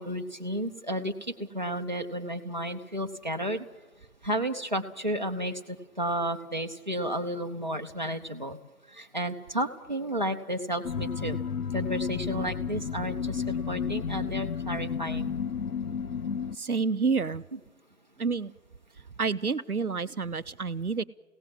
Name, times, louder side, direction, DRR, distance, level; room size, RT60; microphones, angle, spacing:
voice 1, 0.0-3.6 4.2-8.6 8.9-11.4 11.7-15.3, right 1 dB, 30° right, 3 dB, 1.1 m, -32 dB
sound 1, 10.8-16.6, left 7 dB, 85° left, 0.8 m, -32 dB
voice 2, 16.5-17.4 18.2-18.5 19.2-21.0, right 5 dB, 80° right, 14 dB, 0.9 m, -28 dB
29.5 x 17.5 x 7.5 m, 1.3 s
figure-of-eight pair, 175°, 44 cm